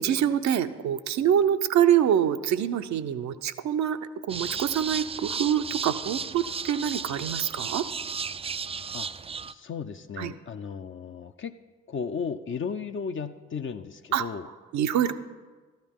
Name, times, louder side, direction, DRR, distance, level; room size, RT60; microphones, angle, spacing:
voice 1, 0.0-4.0 4.3-7.8 10.2-10.3 14.1-14.2 14.7-15.1, right 9 dB, 60° right, 9 dB, 0.7 m, -25 dB
sound 1, 4.3-9.5, right 5 dB, 20° right, 0.4 m, -34 dB
voice 2, 9.5-11.5 11.9-14.5, left 6 dB, 40° left, 8 dB, 0.6 m, -35 dB
13.5 x 10.5 x 3.7 m, 1.4 s
hypercardioid pair, 40°, 32 cm